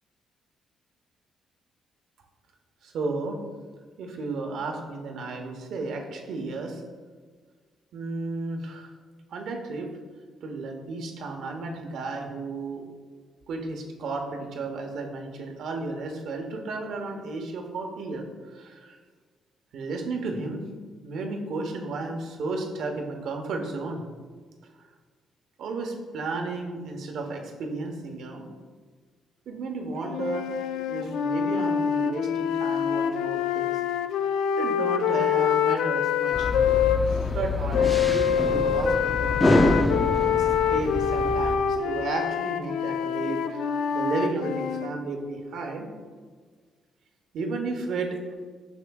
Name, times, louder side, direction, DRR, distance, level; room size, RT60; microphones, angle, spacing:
voice 1, 2.8-3.4 4.0-6.8 7.9-8.9 9.3-9.9 10.4-12.8 13.5-19.0 19.7-20.6 21.0-24.0 25.6-28.4 29.5-30.5 30.9-33.8 34.6-36.5 37.3-39.8 40.3-45.9 47.3-48.3, right 3 dB, 75° right, 3 dB, 1.0 m, -33 dB
sound 1, 30.1-37.0 37.7-44.9, left 8 dB, 90° left, 0.3 m, -25 dB
sound 2, 36.3-41.6, left 2 dB, 15° left, 0.6 m, -26 dB
8.1 x 6.3 x 2.3 m, 1.5 s
cardioid pair, 90°, 0 cm